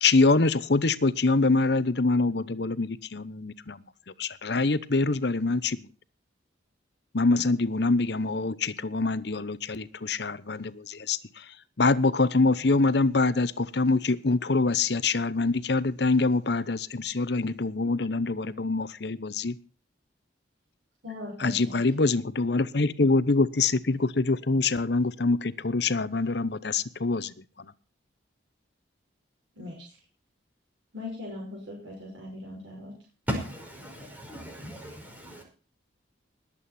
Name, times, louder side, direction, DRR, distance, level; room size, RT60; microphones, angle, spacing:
voice 1, 0.0-3.8 4.2-5.8 7.1-11.2 11.8-19.6 21.4-27.3, left 3 dB, 60° left, 0.8 m, -25 dB
voice 2, 21.0-21.8 29.6-29.9 30.9-32.9, left 2 dB, 85° right, 6.2 m, -40 dB
voice 3, 33.3-35.4, equal, 10° right, 5.2 m, -36 dB
20.5 x 8.6 x 4.3 m
head